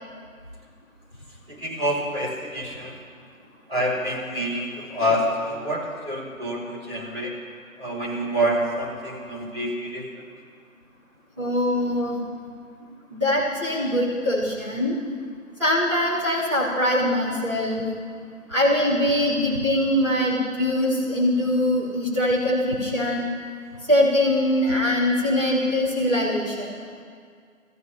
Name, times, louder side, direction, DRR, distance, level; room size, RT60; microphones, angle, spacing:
voice 1, 1.5-3.0 3.7-7.3 7.8-10.1 24.7-24.8, equal, 45° right, -6 dB, 4.3 m, -27 dB
voice 2, 11.4-12.2 13.1-15.0 15.6-17.9 18.5-23.3 23.9-26.7, left 1 dB, 20° right, -12 dB, 3.1 m, -22 dB
25.5 x 14.5 x 3.0 m, 2.1 s
figure-of-eight pair, 175°, 42 cm